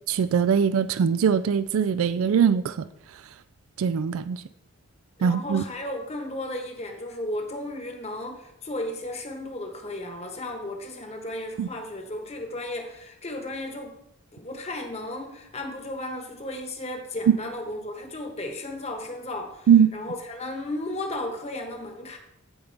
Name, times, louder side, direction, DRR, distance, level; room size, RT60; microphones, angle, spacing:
voice 1, 0.1-2.8 3.8-4.4 5.2-5.6 11.6-11.7 19.7-19.9, right 7 dB, 75° right, 14 dB, 0.3 m, -21 dB
voice 2, 5.2-14.0 14.3-22.2, left 1 dB, 30° left, 4 dB, 1.2 m, -34 dB
15.0 x 5.2 x 3.4 m, 0.80 s
head